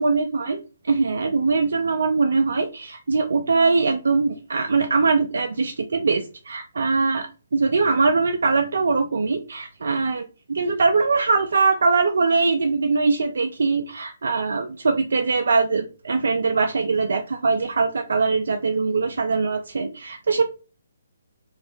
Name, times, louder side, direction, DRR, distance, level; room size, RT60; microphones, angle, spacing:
voice 1, 0.0-20.4, right 4 dB, 70° right, 5 dB, 0.3 m, -22 dB
2.6 x 2.4 x 3.3 m, 0.33 s
figure-of-eight pair, 140°, 0 cm